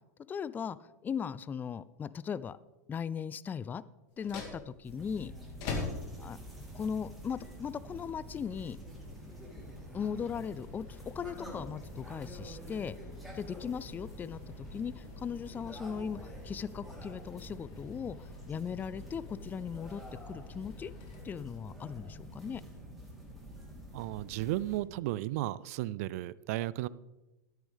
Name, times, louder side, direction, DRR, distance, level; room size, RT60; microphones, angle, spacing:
voice 1, 0.3-0.8 1.0-2.6 2.9-3.8 4.2-5.3 6.2-6.4 6.7-8.8 9.9-13.0 13.3-20.9 21.2-22.6, left 7 dB, 20° left, 18 dB, 0.4 m, -38 dB
sound 1, 4.1-21.9, left 3 dB, 50° left, 2.3 m, -47 dB
sound 2, 4.8-24.8, equal, ahead, 3.5 m, -48 dB
sound 3, 5.9-17.2, right 1 dB, 20° right, 2.1 m, -56 dB
voice 2, 23.9-26.9, right 16 dB, 55° right, 20 dB, 0.4 m, -34 dB
12.0 x 10.5 x 3.5 m, 1.0 s
hypercardioid pair, 95°, 10 cm